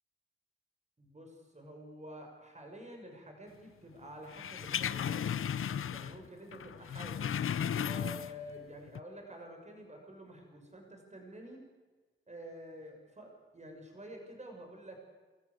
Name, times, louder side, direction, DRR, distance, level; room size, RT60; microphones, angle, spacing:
voice 1, 1.0-5.3 5.9-7.3 7.8-11.6 12.3-15.0, equal, 35° right, 3 dB, 6.5 m, -49 dB
sound 1, 4.3-6.3 6.5-8.5 8.9-9.0, left 8 dB, 80° left, 0.7 m, -35 dB
26.5 x 14.5 x 8.5 m, 1.3 s
cardioid pair, 60°, 21 cm